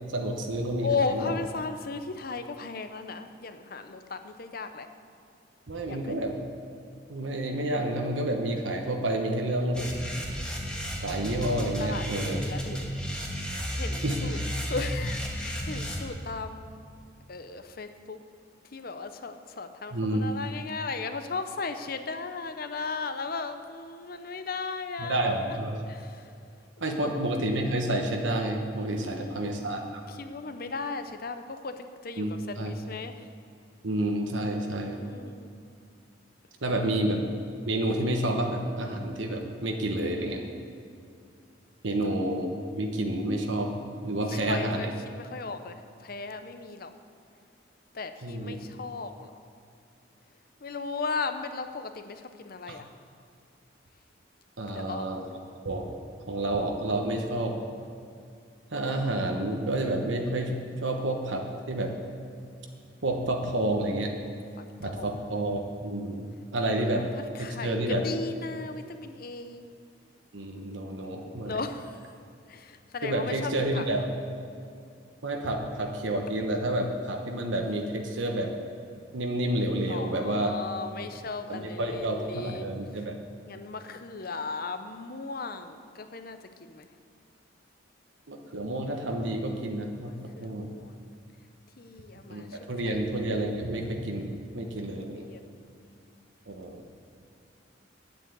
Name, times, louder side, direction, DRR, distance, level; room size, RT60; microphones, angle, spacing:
voice 1, 0.1-1.3 5.7-6.4 7.1-9.9 11.0-12.4 14.0-14.4 19.9-20.2 25.0-25.8 26.8-30.0 32.2-32.7 33.8-35.0 36.6-37.2 37.6-40.4 41.8-42.5 42.7-43.7 44.0-44.9 48.2-48.6 52.7-52.8 54.6-55.2 55.6-55.9 56.3-57.6 58.7-61.9 63.0-64.1 64.8-67.1 67.4-68.1 70.3-71.6 73.0-74.1 75.2-78.5 79.1-80.5 81.5-83.1 88.3-90.7 92.3-95.2 96.5-96.8, right 1 dB, 80° right, 2 dB, 1.2 m, -29 dB
voice 2, 0.8-4.9 5.9-6.1 11.8-12.8 13.2-13.3 13.8-16.8 17.3-18.2 18.7-25.5 25.9-26.3 26.8-27.1 29.0-33.3 35.0-35.5 36.7-37.0 41.9-42.0 44.2-44.9 45.2-46.9 47.9-49.3 50.6-52.9 54.7-55.1 64.6-65.2 67.0-67.1 67.3-69.7 71.4-72.0 72.5-74.0 79.9-82.7 83.5-86.4 86.7-86.9 90.0-91.0 91.8-93.0 94.9-95.4, left 4 dB, 50° left, 9 dB, 0.7 m, -36 dB
sound 1, 9.7-16.0, equal, 5° left, 1.5 m, -33 dB
10.0 x 8.2 x 8.2 m, 2.4 s
head